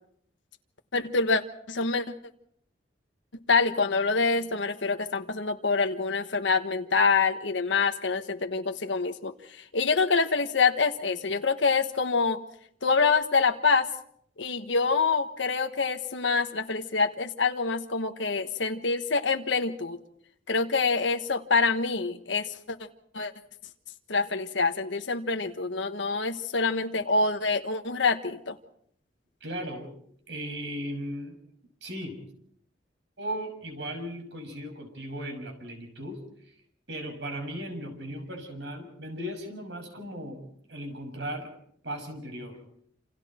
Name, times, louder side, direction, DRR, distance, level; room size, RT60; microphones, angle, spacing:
voice 1, 0.9-1.4 1.7-2.0 3.5-9.3 9.7-12.4 12.8-13.9 14.4-20.0 20.5-22.8 23.1-23.3 24.1-28.5, left 4 dB, 90° left, 6 dB, 1.3 m, -26 dB
voice 2, 29.4-29.9 30.3-31.4 31.8-32.2 33.2-36.5 36.9-40.4 40.7-41.5 41.8-42.6, equal, 70° right, 4 dB, 6.3 m, -37 dB
28.0 x 27.5 x 4.4 m, 0.66 s
head